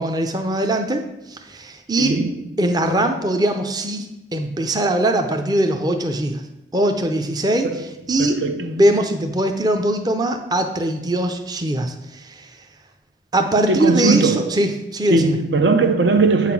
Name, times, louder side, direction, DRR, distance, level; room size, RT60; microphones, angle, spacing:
voice 1, 0.0-2.2 2.6-6.4 6.7-7.7 8.1-12.7 13.3-15.4, right 1 dB, 20° right, 0.6 m, -21 dB
voice 2, 2.0-2.5 7.6-7.8 8.2-8.7 13.7-14.6 15.1-16.5, right 3 dB, 65° right, 0.7 m, -19 dB
8.3 x 5.8 x 5.9 m
head